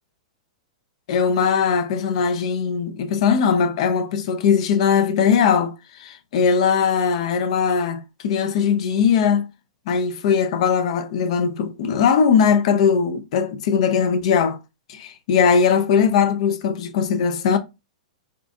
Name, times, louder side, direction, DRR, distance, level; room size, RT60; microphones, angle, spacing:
voice 1, 1.1-9.5 9.9-14.6 14.9-17.6, left 6 dB, 55° left, 0.3 m, -20 dB
2.4 x 2.3 x 2.6 m
hypercardioid pair, 105°, 4 cm